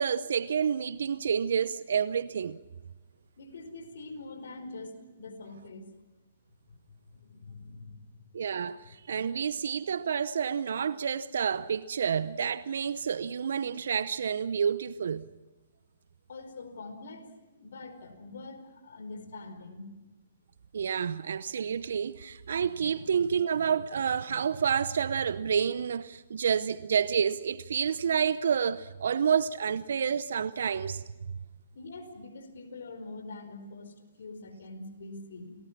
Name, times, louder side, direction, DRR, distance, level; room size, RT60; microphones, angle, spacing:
voice 1, 0.0-2.6 8.3-15.3 20.7-31.0, right 7 dB, 70° right, 0.7 m, -29 dB
voice 2, 3.4-5.9 7.1-8.1 16.3-17.3 17.6-19.9 31.7-35.5, left 3 dB, 70° left, 4.9 m, -44 dB
29.5 x 20.0 x 6.1 m
hypercardioid pair, 135°, 0 cm